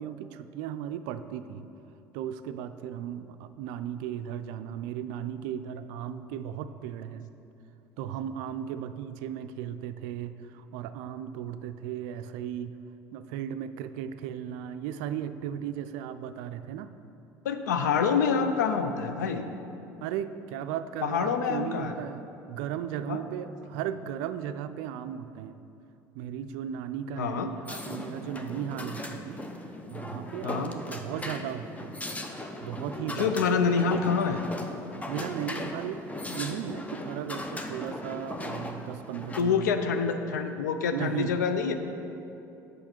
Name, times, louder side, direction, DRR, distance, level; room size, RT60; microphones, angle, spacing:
voice 1, 0.0-1.7 2.1-7.3 8.0-12.8 13.1-16.9 20.0-25.6 26.1-29.4 29.9-32.0 32.6-33.3 35.1-36.0 36.3-39.7 40.9-41.3, right 9 dB, 70° right, 11 dB, 0.4 m, -36 dB
voice 2, 17.4-19.5 21.0-22.0 23.1-23.2 27.2-27.5 30.4-30.8 33.2-34.4 39.4-41.7, left 6 dB, 85° left, 8 dB, 0.5 m, -26 dB
sound 1, 27.7-39.4, left 1 dB, 15° left, 0.7 m, -38 dB
7.9 x 6.3 x 4.4 m, 2.9 s
hypercardioid pair, 70°, 9 cm